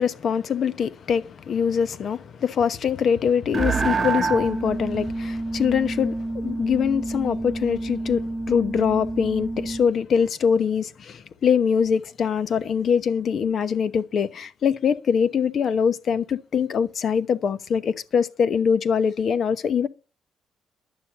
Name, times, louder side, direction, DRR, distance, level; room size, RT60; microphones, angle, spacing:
voice 1, 0.0-19.9, left 7 dB, 60° left, 1.0 m, -23 dB
sound 1, 3.5-9.9, right 3 dB, 20° right, 1.7 m, -28 dB
11.5 x 7.0 x 8.7 m
cardioid pair, 90°, 0 cm